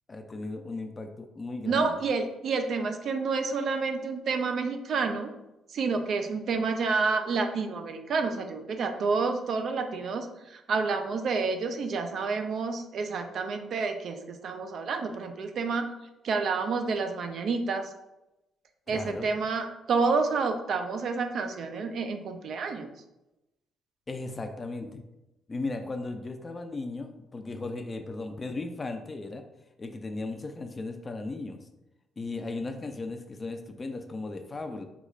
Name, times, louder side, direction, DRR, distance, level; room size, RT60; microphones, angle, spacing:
voice 1, 0.1-2.0 18.9-19.3 24.1-25.0 25.5-29.4 29.8-31.6 32.2-34.8, left 3 dB, 30° left, 6 dB, 0.3 m, -36 dB
voice 2, 1.6-5.3 5.7-15.9 16.2-17.8 18.9-22.9, right 4 dB, 60° right, 6 dB, 0.4 m, -29 dB
3.6 x 3.1 x 2.4 m, 0.93 s
cardioid pair, 90°, 0 cm